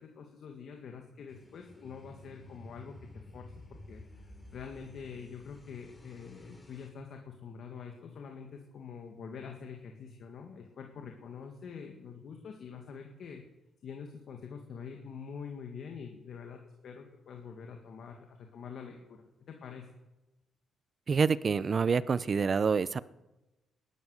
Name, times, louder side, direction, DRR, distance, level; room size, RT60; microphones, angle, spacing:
voice 1, 0.0-13.4 13.8-19.9, left 6 dB, 60° left, 3 dB, 2.0 m, -46 dB
sound 1, 1.3-6.9, left 1 dB, 15° left, 3.8 m, -52 dB
voice 2, 21.1-23.0, right 5 dB, 40° right, 18 dB, 0.6 m, -27 dB
18.5 x 12.0 x 6.6 m, 1.0 s
cardioid pair, 90°, 0 cm